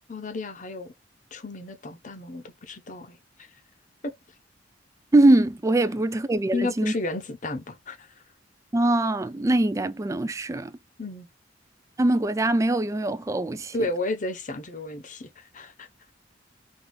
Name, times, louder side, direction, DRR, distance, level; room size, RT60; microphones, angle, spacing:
voice 1, 0.1-0.9 1.3-3.2 4.0-4.1 6.5-8.1 11.0-11.3 13.7-16.1, left 2 dB, 45° left, 0.8 m, -32 dB
voice 2, 5.1-6.9 8.7-10.7 12.0-13.7, right 2 dB, 15° right, 0.3 m, -22 dB
3.5 x 2.7 x 3.8 m
head